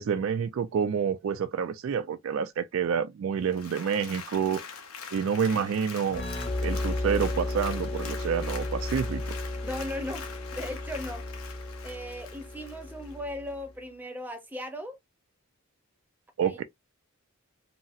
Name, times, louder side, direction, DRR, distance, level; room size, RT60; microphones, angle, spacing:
voice 1, 0.0-4.6 5.1-6.2 6.6-9.4 16.4-16.6, right 7 dB, 65° right, 0.3 m, -28 dB
Applause, 3.4-13.2 13.6-13.7, left 6 dB, 80° left, 0.9 m, -44 dB
sound 1, 6.1-13.6, left 1 dB, 25° left, 0.8 m, -34 dB
voice 2, 9.6-10.3 10.5-11.2 11.8-15.0 16.4-16.6, left 1 dB, 10° right, 0.6 m, -37 dB
3.9 x 2.0 x 2.4 m
head